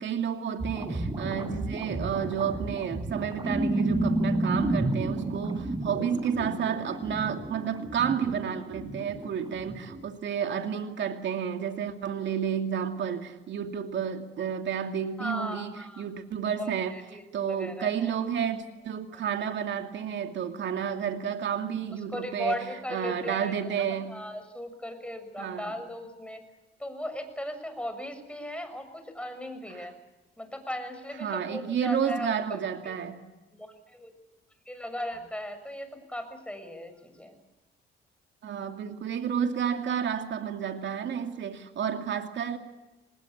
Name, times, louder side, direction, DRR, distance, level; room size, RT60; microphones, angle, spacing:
voice 1, 0.0-17.0 17.3-24.1 25.4-25.7 29.7-29.9 31.2-33.2 38.4-42.6, right 8 dB, 65° right, 6 dB, 2.6 m, -31 dB
sound 1, 0.6-10.0, right 2 dB, 20° right, 6.2 m, -31 dB
voice 2, 15.2-16.0 16.6-18.1 22.1-26.4 26.8-30.0 30.4-33.0 33.5-34.1 34.7-37.4, left 1 dB, 5° left, 8 dB, 6.7 m, -37 dB
25.0 x 21.0 x 8.6 m, 1.0 s
cardioid pair, 90°, 20 cm